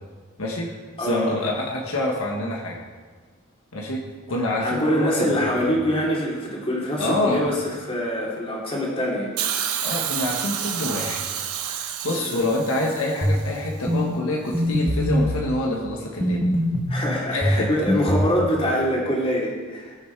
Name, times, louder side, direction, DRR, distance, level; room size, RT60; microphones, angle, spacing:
voice 1, 0.4-0.7 1.0-2.8 3.7-4.0 4.3-5.7 7.0-7.4 9.8-11.2 12.0-16.4 17.3-17.9, left 1 dB, 70° left, 0 dB, 1.5 m, -26 dB
voice 2, 1.0-1.4 4.6-7.6 7.9-9.6 12.1-12.4 16.9-20.0, equal, 25° left, -3 dB, 2.9 m, -24 dB
Hiss, 9.4-13.5 14.5-14.6, right 9 dB, 90° right, 1.2 m, -29 dB
sound 1, 13.2-13.5 13.9-14.0 14.5-15.3 16.2-17.0 17.4-18.4, equal, 5° right, 1.7 m, -21 dB
20.5 x 7.0 x 4.7 m, 1.4 s
head